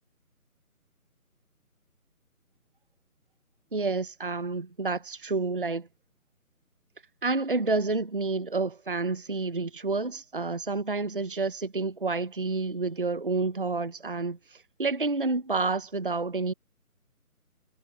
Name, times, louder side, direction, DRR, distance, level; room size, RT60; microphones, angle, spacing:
voice 1, 3.7-5.9 7.2-14.4 14.8-16.5, right 3 dB, 35° right, 0.8 m, -29 dB
figure-of-eight pair, 175°, 44 cm